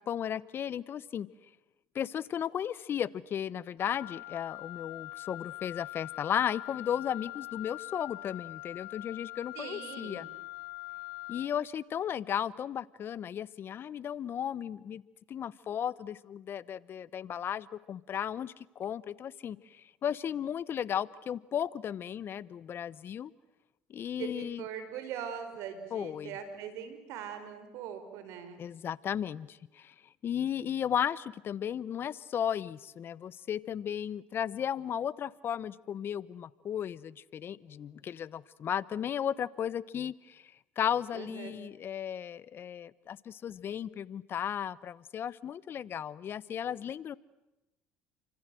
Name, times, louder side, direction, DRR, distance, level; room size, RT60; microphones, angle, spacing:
voice 1, 0.1-1.3 1.9-10.3 11.3-15.0 15.3-23.3 23.9-24.6 25.9-26.3 28.6-29.9 30.2-47.2, left 9 dB, 50° left, 19 dB, 1.0 m, -35 dB
Wind instrument woodwind instrument, 3.8-11.6, left 23 dB, 75° left, 0.9 m, -43 dB
voice 2, 9.5-10.3 24.2-28.6 41.1-41.6, right 8 dB, 70° right, 9 dB, 5.0 m, -41 dB
29.0 x 25.5 x 7.8 m, 0.95 s
supercardioid pair, 80°, 5 cm